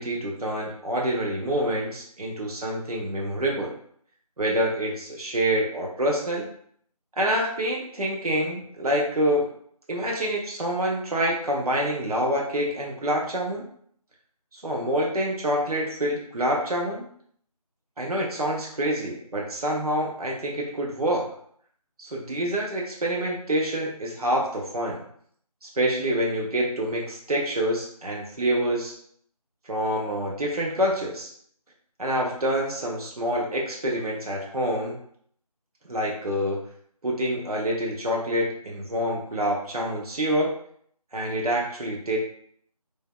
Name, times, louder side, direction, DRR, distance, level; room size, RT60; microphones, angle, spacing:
voice 1, 0.0-3.7 4.4-6.5 7.2-9.5 9.9-13.7 14.5-17.0 18.0-21.2 22.0-25.0 25.6-28.9 29.7-31.3 32.0-35.0 35.8-36.6 37.0-40.5 41.1-42.2, equal, 70° right, -2 dB, 0.7 m, -26 dB
3.3 x 2.1 x 2.2 m, 0.63 s
figure-of-eight pair, 180°, 20 cm